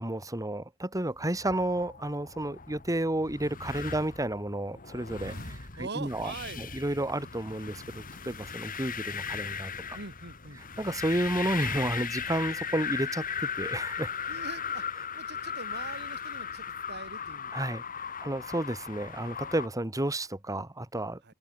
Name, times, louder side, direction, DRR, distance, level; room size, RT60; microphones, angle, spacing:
voice 1, 0.0-9.7 10.8-14.1 17.5-17.8 18.2-21.3, right 1 dB, 15° right, 2.1 m, -31 dB
sound 1, 1.2-19.7, left 7 dB, 40° left, 2.9 m, -37 dB
voice 2, 5.2-6.7 9.9-10.6 14.3-14.9 15.2-17.7 21.2-21.3, right 4 dB, 50° right, 3.8 m, -43 dB
head